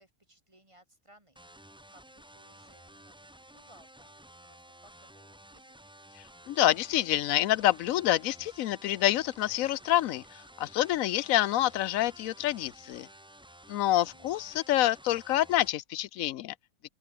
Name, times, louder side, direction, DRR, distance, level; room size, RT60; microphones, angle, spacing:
voice 1, 0.0-3.3 3.5-5.8 14.0-14.6, right 1 dB, 20° right, 3.2 m, -62 dB
sound 1, 1.4-15.7, right 1 dB, 5° right, 0.6 m, -53 dB
voice 2, 6.2-13.1 13.7-16.5, left 14 dB, 80° left, 1.0 m, -27 dB
open air
omnidirectional pair, 1.4 m